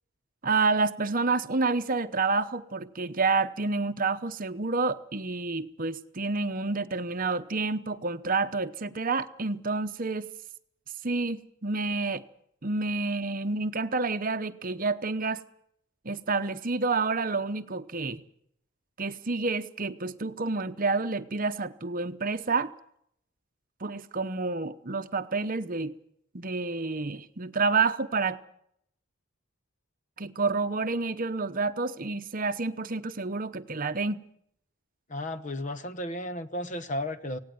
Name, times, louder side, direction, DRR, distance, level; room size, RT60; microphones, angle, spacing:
voice 1, 0.4-10.3 11.0-12.2 12.6-15.4 16.0-18.2 19.0-22.7 23.8-26.0 26.3-28.4 30.2-34.2, right 3 dB, 40° right, 0.9 m, -29 dB
voice 2, 35.1-37.4, left 1 dB, 35° left, 1.0 m, -34 dB
18.5 x 17.0 x 9.3 m
head